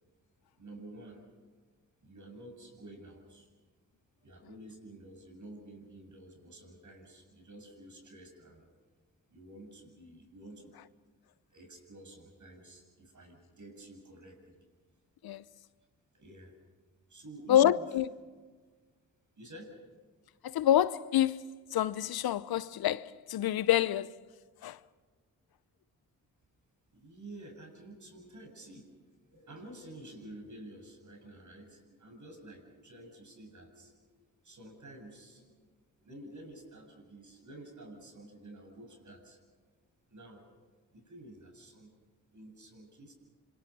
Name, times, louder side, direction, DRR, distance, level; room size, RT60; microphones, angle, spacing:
voice 1, 0.6-1.2 2.0-3.5 4.2-8.7 9.3-10.8 11.5-14.6 16.1-16.5 17.1-17.9 19.3-19.8 26.9-28.9 29.3-35.6 36.0-39.7 40.1-40.5 40.9-41.9 42.3-43.1, right 1 dB, 50° right, 7.6 m, -50 dB
voice 2, 17.5-18.1 20.4-24.2 24.6-24.8, left 12 dB, 70° left, 0.8 m, -27 dB
26.5 x 23.0 x 6.1 m
supercardioid pair, 45°, 38 cm